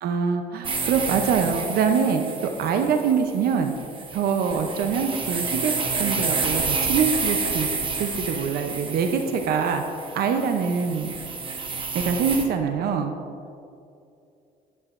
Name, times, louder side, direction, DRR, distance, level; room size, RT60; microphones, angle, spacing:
voice 1, 0.0-3.7 4.1-5.7 6.0-7.7 8.0-9.8 10.1-11.1 11.9-13.1, right 6 dB, 65° right, 6 dB, 0.6 m, -24 dB
sound 1, 0.6-12.4, right 4 dB, 30° right, 1.0 m, -29 dB
10.5 x 7.8 x 2.5 m, 2.5 s
cardioid pair, 110°, 17 cm